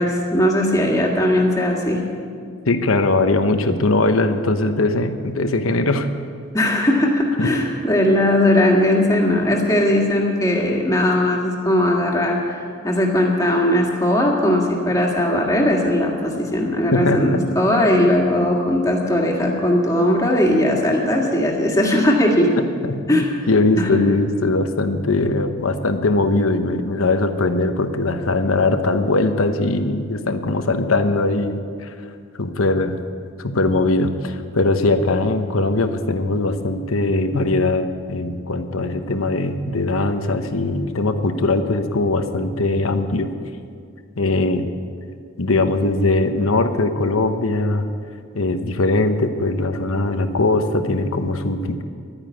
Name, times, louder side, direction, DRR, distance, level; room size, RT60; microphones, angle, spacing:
voice 1, 0.0-2.0 6.5-22.5 23.1-23.3 23.8-24.0, left 1 dB, 15° left, -1 dB, 1.9 m, -18 dB
voice 2, 2.7-6.1 7.4-7.5 16.9-17.4 22.6-32.0 32.4-33.0 33.4-43.3 44.2-44.7 45.4-47.9 48.3-51.8, left 2 dB, 90° left, 8 dB, 1.0 m, -20 dB
11.5 x 9.7 x 9.2 m, 2.2 s
head